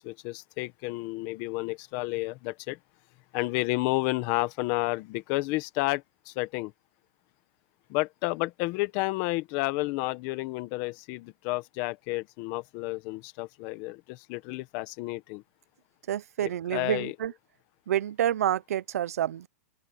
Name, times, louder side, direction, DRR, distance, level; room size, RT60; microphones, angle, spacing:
voice 1, 0.0-2.8 3.3-6.7 7.9-15.4 16.4-17.1, left 21 dB, 35° left, 1.3 m, -31 dB
voice 2, 16.1-17.3 17.9-19.5, right 11 dB, 90° right, 0.7 m, -28 dB
open air
supercardioid pair, 170°, 8 cm